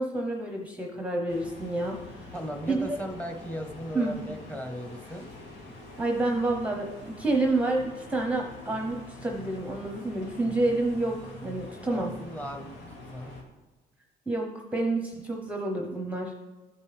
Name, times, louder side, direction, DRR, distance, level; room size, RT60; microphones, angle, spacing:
voice 1, 0.0-2.3 2.7-3.0 3.9-4.2 6.0-12.1 14.3-16.4, right 2 dB, 10° right, 1 dB, 0.9 m, -29 dB
sound 1, 1.3-13.4, left 2 dB, 75° left, 2.0 m, -45 dB
voice 2, 2.3-5.3 11.9-12.8 13.1-13.3, equal, 10° left, 3 dB, 1.2 m, -37 dB
13.0 x 5.4 x 3.4 m, 1.2 s
cardioid pair, 110°, 17 cm